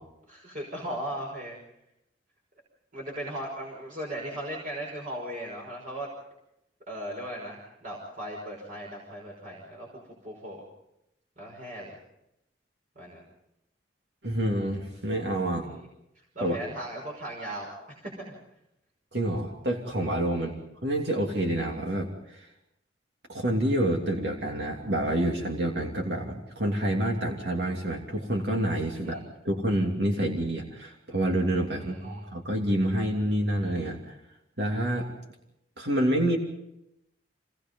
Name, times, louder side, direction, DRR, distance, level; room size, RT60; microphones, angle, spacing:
voice 1, 0.2-1.6 2.9-6.1 6.9-9.9 10.2-10.6 11.4-12.0 13.0-13.2 15.6-15.9 16.1-18.4 20.3-20.6 29.0-29.2 31.8-32.3, right 1 dB, 50° right, -2 dB, 5.7 m, -38 dB
voice 2, 14.2-15.7 16.4-16.6 19.1-20.5 20.8-22.5 23.3-34.2 34.6-35.1 35.8-36.4, right 1 dB, 65° right, 1 dB, 3.0 m, -28 dB
26.5 x 20.0 x 5.5 m, 0.84 s
head